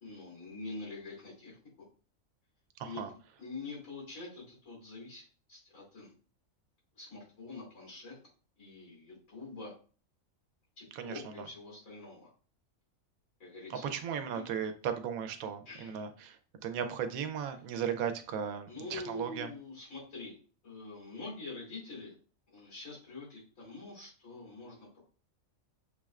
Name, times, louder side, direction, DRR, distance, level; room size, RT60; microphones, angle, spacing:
voice 1, 0.0-1.6 2.8-3.0 3.4-5.2 5.5-6.1 6.9-8.2 8.6-9.7 10.8-12.3 13.4-13.9 14.3-14.4 15.6-16.0 18.7-20.3 20.6-22.1 22.5-25.0, left 3 dB, 85° left, -4 dB, 3.1 m, -45 dB
voice 2, 10.9-11.4 13.8-16.4 16.6-19.5, right 8 dB, 85° right, 8 dB, 1.1 m, -36 dB
6.5 x 3.2 x 2.4 m, 0.39 s
omnidirectional pair, 1.4 m